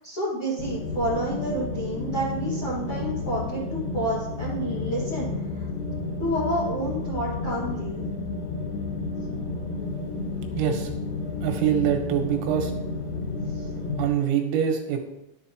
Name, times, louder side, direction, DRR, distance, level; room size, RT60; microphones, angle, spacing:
voice 1, 0.0-5.7 6.2-8.0 13.5-13.7, right 1 dB, 55° left, -7 dB, 1.7 m, -29 dB
sound 1, 0.6-14.1, left 3 dB, 75° left, 4.3 m, -31 dB
voice 2, 10.5-10.9 11.4-12.7 14.0-15.0, right 9 dB, 90° right, 3 dB, 3.8 m, -24 dB
11.5 x 8.0 x 3.0 m, 0.86 s
omnidirectional pair, 5.8 m